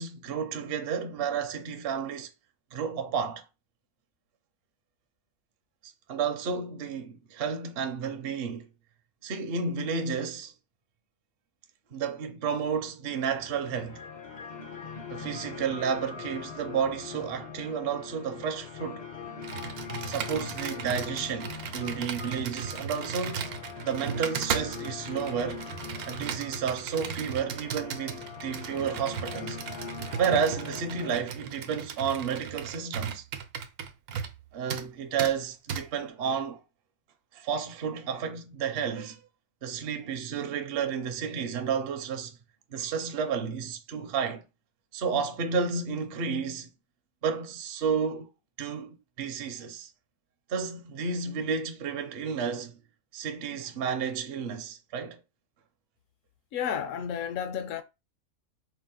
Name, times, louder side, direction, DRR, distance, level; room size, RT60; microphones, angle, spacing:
voice 1, 0.0-2.3 2.7-3.4 6.1-8.7 9.2-10.5 11.9-14.0 15.1-19.1 20.1-23.5 23.8-25.6 26.1-29.6 30.1-33.2 34.5-36.6 37.3-39.2 39.6-42.4 42.7-44.4 44.9-46.7 47.2-48.3 48.6-49.9 50.5-52.7 53.1-55.2, right 6 dB, 55° right, 0.7 m, -31 dB
sound 1, 13.1-31.1, left 6 dB, 45° left, 0.6 m, -42 dB
Computer keyboard, 19.4-34.4 34.7-34.9 35.2-35.3 35.7-35.8, right 7 dB, 90° right, 1.1 m, -36 dB
voice 2, 56.5-57.8, left 8 dB, 70° left, 0.9 m, -32 dB
4.8 x 2.4 x 3.7 m
omnidirectional pair, 1.5 m